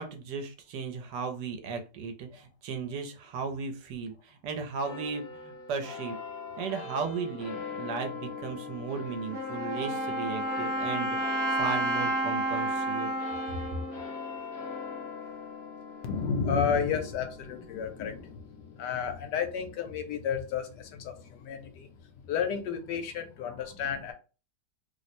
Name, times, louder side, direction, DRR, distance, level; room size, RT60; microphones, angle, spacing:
voice 1, 0.0-6.2 6.6-13.1, right 5 dB, 75° right, 1.2 m, -36 dB
sound 1, 4.8-21.5, left 4 dB, 55° left, 0.7 m, -43 dB
Wind instrument woodwind instrument, 9.3-15.0, right 1 dB, 50° right, 0.7 m, -31 dB
voice 2, 16.0-24.1, left 6 dB, 75° left, 1.2 m, -32 dB
3.1 x 2.0 x 4.1 m
omnidirectional pair, 2.0 m